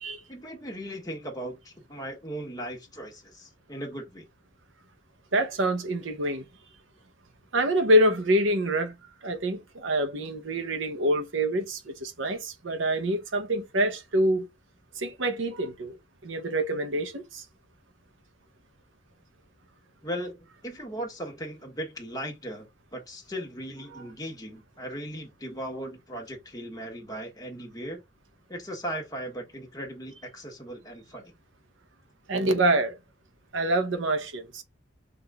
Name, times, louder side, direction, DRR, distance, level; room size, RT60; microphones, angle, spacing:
voice 1, 0.3-4.2 20.0-28.0 28.5-31.3, equal, 20° left, 1.3 m, -38 dB
voice 2, 5.3-6.4 7.5-8.9 9.2-14.5 15.0-16.0 16.2-17.4 23.9-24.0 32.3-33.0 33.5-34.6, right 1 dB, 70° right, 0.8 m, -26 dB
5.9 x 2.6 x 3.4 m
head